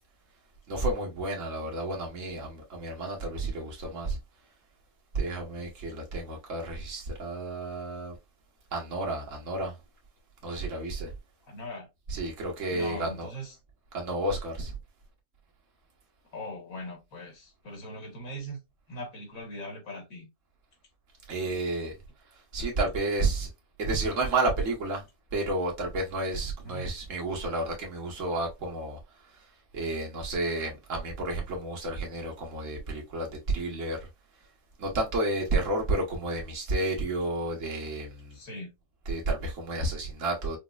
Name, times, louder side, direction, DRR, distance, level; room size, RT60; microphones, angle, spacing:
voice 1, 0.7-4.2 5.1-8.2 8.7-9.7 10.4-11.1 12.1-13.3 13.9-14.7 21.3-21.9 22.5-23.5 23.8-25.1 25.3-29.0 29.7-34.1 34.8-38.4 39.1-40.6, right 2 dB, 60° right, 1.5 m, -31 dB
voice 2, 11.5-11.9 12.7-13.5 16.3-18.6 18.9-20.3 26.6-26.9 35.6-35.7 38.3-38.7, equal, 75° left, 1.6 m, -40 dB
5.1 x 2.0 x 2.2 m
omnidirectional pair, 1.5 m